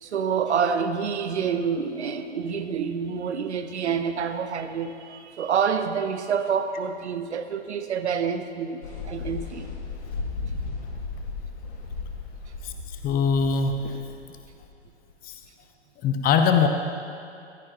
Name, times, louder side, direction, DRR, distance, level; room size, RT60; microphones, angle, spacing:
voice 1, 0.0-8.8 9.1-9.7, right 6 dB, 75° right, 9 dB, 0.9 m, -27 dB
sound 1, 8.8-15.4, left 4 dB, 65° left, 2.3 m, -35 dB
voice 2, 13.0-14.0 15.2-15.4 16.0-16.7, left 6 dB, 25° left, 6 dB, 0.9 m, -22 dB
15.5 x 14.0 x 2.9 m, 2.5 s
figure-of-eight pair, 105°, 34 cm